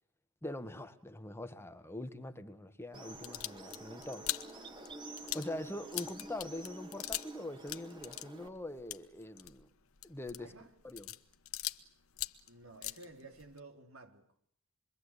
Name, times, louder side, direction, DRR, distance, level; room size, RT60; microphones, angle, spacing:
voice 1, 0.4-4.7 5.3-9.7 10.0-10.5 10.8-11.1, left 1 dB, 10° left, 1.8 m, -43 dB
sound 1, 2.9-8.5, right 2 dB, 25° right, 2.3 m, -49 dB
sound 2, 3.1-7.4 7.6-11.9 12.1-13.6, left 14 dB, 90° left, 1.2 m, -42 dB
voice 2, 10.3-10.7 12.5-14.3, right 2 dB, 75° right, 4.0 m, -54 dB
27.0 x 23.5 x 8.5 m
head